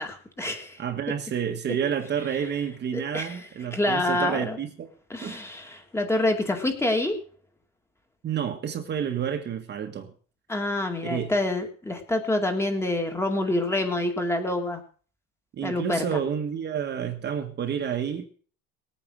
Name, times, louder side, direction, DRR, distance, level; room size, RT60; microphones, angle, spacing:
voice 1, 0.0-0.8 2.9-4.6 5.1-7.2 10.5-14.8 15.6-16.2, left 1 dB, 10° left, 5 dB, 2.1 m, -27 dB
voice 2, 0.8-4.9 5.2-5.4 8.2-10.1 11.0-11.3 15.5-18.3, right 8 dB, 35° right, 5 dB, 1.6 m, -29 dB
19.5 x 9.1 x 6.3 m, 0.43 s
cardioid pair, 160°, 32 cm